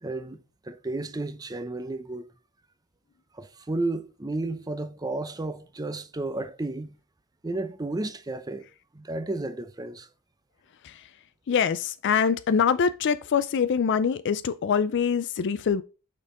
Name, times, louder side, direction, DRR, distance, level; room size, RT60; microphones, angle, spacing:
voice 1, 0.0-0.4 0.6-2.3 3.3-7.0 7.4-8.7 8.9-10.1, right 2 dB, 15° right, 0.6 m, -32 dB
voice 2, 11.5-15.8, left 6 dB, 55° left, 0.4 m, -24 dB
6.4 x 5.3 x 3.7 m
head